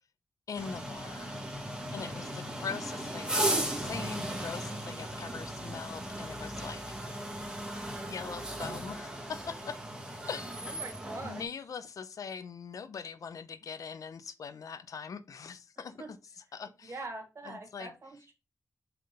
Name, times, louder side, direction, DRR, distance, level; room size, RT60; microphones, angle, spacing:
voice 1, 0.5-1.4 1.9-6.8 8.1-9.8 10.3-10.9 11.2-17.0 17.4-17.9, left 6 dB, 75° left, 0.7 m, -42 dB
sound 1, 0.5-11.4, right 1 dB, 10° right, 1.3 m, -36 dB
voice 2, 10.8-11.4 16.0-16.1 16.9-18.3, right 2 dB, 45° right, 1.7 m, -42 dB
5.7 x 3.7 x 5.0 m
wide cardioid pair, 125°, 6 cm